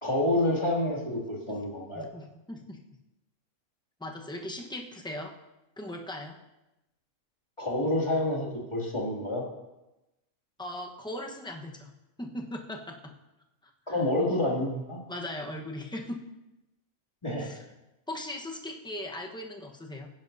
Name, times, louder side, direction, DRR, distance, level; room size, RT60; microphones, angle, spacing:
voice 1, 0.0-2.0 7.6-9.4 13.9-15.0 17.2-17.5, left 1 dB, 20° left, -3 dB, 2.5 m, -28 dB
voice 2, 1.9-2.8 4.0-5.3 5.8-6.4 10.6-11.9 12.2-13.1 13.9-14.0 15.1-16.2 17.4-17.6 18.1-20.1, left 1 dB, 5° left, 1 dB, 1.0 m, -39 dB
16.5 x 10.5 x 2.7 m, 0.95 s
omnidirectional pair, 1.5 m